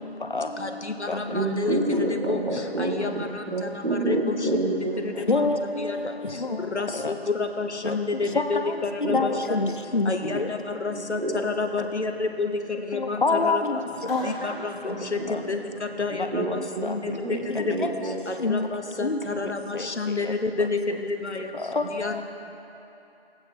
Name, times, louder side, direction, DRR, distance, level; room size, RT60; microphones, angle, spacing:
voice 1, 0.6-1.8 2.2-2.4 2.8-3.7 4.1-4.4 5.3-5.5 5.8-6.0 6.7-9.6 10.1-12.5 12.9-13.8 14.2-15.2 15.5-15.6 16.0-17.0 17.5-17.9 18.3-21.5 22.0-22.2, left 3 dB, 90° left, 6 dB, 1.0 m, -29 dB
voice 2, 1.3-5.3 9.0-9.4 10.9-11.4 14.9-15.6 16.1-16.5 16.7-17.3 17.7-18.2, right 1 dB, 60° right, -1 dB, 1.5 m, -28 dB
voice 3, 5.3-6.6 7.0-7.1 7.8-7.9 8.4-8.5 9.1-10.5 12.9-13.8 14.1-14.3 16.8-16.9 17.5-17.9 18.4-18.7 19.0-19.2 19.7-19.9 21.7-22.2, left 3 dB, 50° left, 7 dB, 0.6 m, -26 dB
Clapping, 14.1-15.9, equal, 15° left, 1.6 m, -46 dB
15.5 x 8.7 x 3.3 m, 2.9 s
figure-of-eight pair, 160°, 33 cm